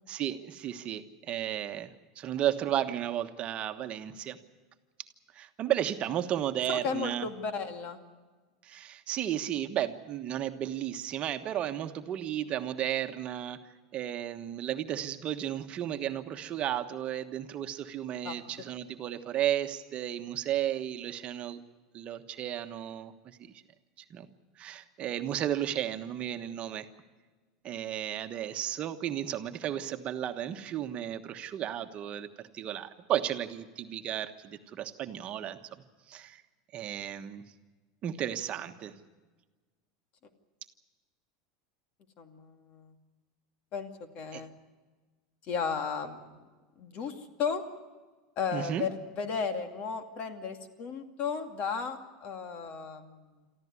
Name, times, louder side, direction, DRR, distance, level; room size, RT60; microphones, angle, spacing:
voice 1, 0.1-4.4 5.3-7.3 8.6-13.6 13.9-21.6 21.9-23.5 24.0-24.3 24.6-26.9 27.6-32.3 32.5-35.6 36.1-36.4 36.7-37.4 38.0-38.9 44.3-44.4 48.5-48.9, right 11 dB, 40° right, 7 dB, 1.3 m, -33 dB
voice 2, 6.7-8.0 18.2-18.4 42.2-42.9 43.7-43.9 44.1-44.5 45.5-46.2 46.8-47.6 48.4-53.2, left 6 dB, 45° left, 7 dB, 2.5 m, -34 dB
23.5 x 14.5 x 9.7 m, 1.3 s
supercardioid pair, 115°, 3 cm